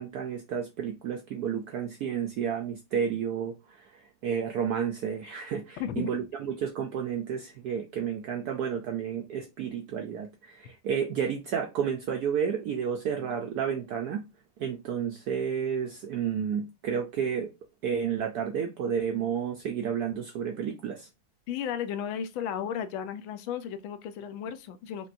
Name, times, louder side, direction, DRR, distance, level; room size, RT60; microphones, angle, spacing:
voice 1, 0.0-14.2 14.6-17.5 17.8-21.1, right 7 dB, 80° right, 0.8 m, -31 dB
voice 2, 5.8-6.1 21.5-25.1, left 8 dB, 80° left, 1.4 m, -34 dB
5.3 x 2.8 x 2.5 m
omnidirectional pair, 2.2 m